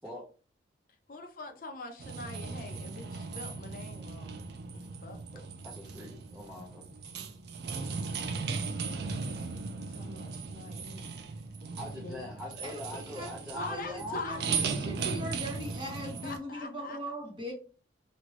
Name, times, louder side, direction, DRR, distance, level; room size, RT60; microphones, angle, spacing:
voice 1, 1.1-4.4 4.7-5.2 9.9-11.1 12.0-12.2 13.6-14.7 16.2-17.0, left 3 dB, 45° left, 4 dB, 0.5 m, -43 dB
sound 1, 2.0-16.4, right 4 dB, 55° right, 0.4 m, -37 dB
voice 2, 5.3-6.9 11.7-15.2 16.0-16.5, left 1 dB, 5° right, -4 dB, 0.6 m, -44 dB
voice 3, 13.5-17.5, equal, 25° right, -2 dB, 1.1 m, -40 dB
2.9 x 2.6 x 3.0 m, 0.36 s
head